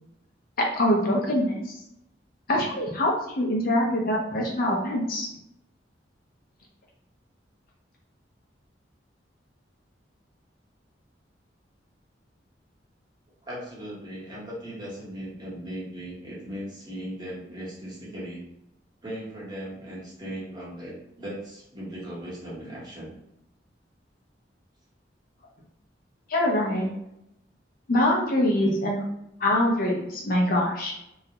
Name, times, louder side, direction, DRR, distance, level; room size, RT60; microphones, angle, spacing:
voice 1, 0.7-1.6 2.5-5.3 26.3-26.9 27.9-29.0 29.4-30.9, left 1 dB, 55° left, -1 dB, 0.5 m, -24 dB
voice 2, 13.5-18.4 19.0-23.1, equal, 25° right, -7 dB, 0.9 m, -38 dB
2.3 x 2.0 x 2.7 m, 0.80 s
head